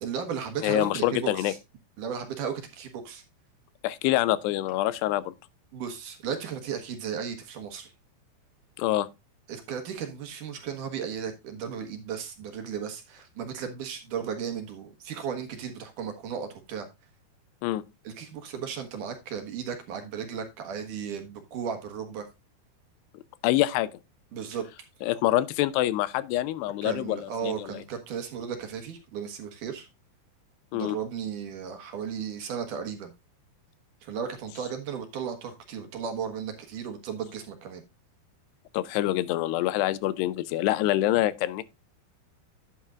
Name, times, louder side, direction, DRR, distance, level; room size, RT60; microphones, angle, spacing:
voice 1, 0.0-1.6 2.0-3.2 5.7-7.9 9.5-16.9 18.0-22.3 24.3-24.7 26.8-29.9 30.7-33.1 34.0-37.8, right 7 dB, 60° right, 2.5 m, -35 dB
voice 2, 0.6-1.5 3.8-5.3 8.8-9.1 17.6-17.8 23.4-23.9 25.0-27.7 30.7-31.0 38.7-41.6, left 15 dB, 85° left, 2.8 m, -26 dB
11.0 x 8.8 x 2.4 m
omnidirectional pair, 4.8 m